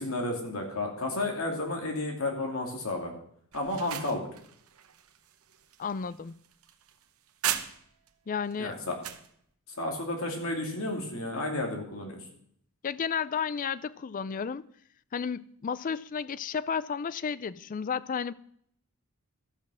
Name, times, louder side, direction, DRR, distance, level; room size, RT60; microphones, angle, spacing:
voice 1, 0.0-3.1 3.5-4.3 8.6-9.0 9.8-12.2, left 2 dB, 70° left, 2.7 m, -32 dB
sound 1, 3.5-8.1 8.5-9.3, right 10 dB, 75° right, 0.8 m, -37 dB
voice 2, 5.8-6.3 8.3-8.8 12.8-14.7 15.1-18.3, left 6 dB, 40° left, 0.4 m, -32 dB
13.0 x 6.3 x 6.3 m
head